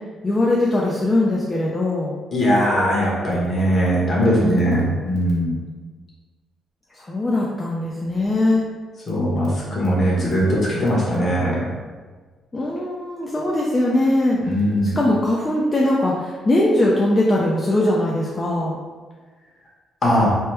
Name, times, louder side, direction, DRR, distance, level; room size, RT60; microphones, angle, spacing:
voice 1, 0.2-2.1 4.4-4.7 6.9-8.6 12.5-18.8, left 1 dB, 25° left, -4 dB, 0.4 m, -21 dB
voice 2, 2.3-5.5 9.1-11.7 14.4-14.9 20.0-20.3, equal, 45° left, -5 dB, 1.1 m, -20 dB
2.9 x 2.2 x 3.2 m, 1.4 s
cardioid pair, 90°, 0 cm